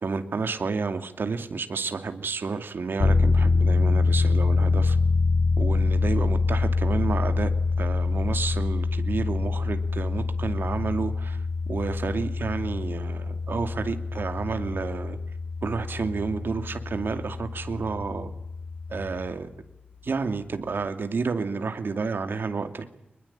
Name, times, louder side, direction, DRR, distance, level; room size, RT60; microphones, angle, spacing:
voice 1, 0.0-5.0 5.6-7.5 7.8-11.4 11.7-15.2 15.6-18.3 18.9-19.5 20.0-22.8, right 4 dB, 75° right, 8 dB, 2.5 m, -30 dB
sound 1, 3.0-19.3, left 3 dB, 90° left, 2.1 m, -25 dB
25.0 x 21.5 x 8.8 m, 0.82 s
wide cardioid pair, 115°, 4 cm